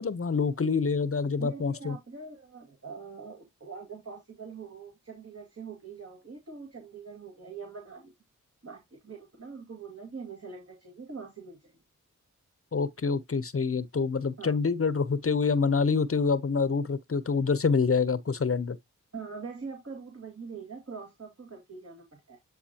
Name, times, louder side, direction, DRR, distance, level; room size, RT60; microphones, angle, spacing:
voice 1, 0.0-1.9 12.7-18.8, left 5 dB, 45° left, 0.8 m, -26 dB
voice 2, 1.4-8.1 8.6-11.7 14.4-14.6 19.1-22.4, right 5 dB, 45° right, 2.1 m, -43 dB
10.0 x 3.9 x 2.9 m
cardioid pair, 40°, 33 cm